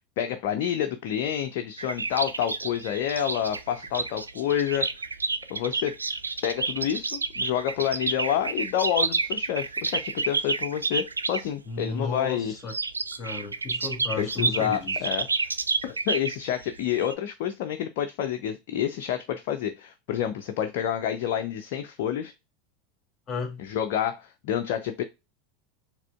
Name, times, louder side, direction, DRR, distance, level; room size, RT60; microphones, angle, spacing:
voice 1, 0.2-4.9 5.5-6.0 6.4-12.6 14.2-15.3 15.8-22.3 23.6-25.0, left 10 dB, 55° left, 0.4 m, -28 dB
sound 1, 1.8-11.5 12.6-17.1, right 4 dB, 85° right, 0.3 m, -30 dB
voice 2, 11.6-12.7 13.2-15.0 23.3-23.6, left 3 dB, 25° left, 1.6 m, -33 dB
4.9 x 3.4 x 2.3 m
figure-of-eight pair, 85°, 0 cm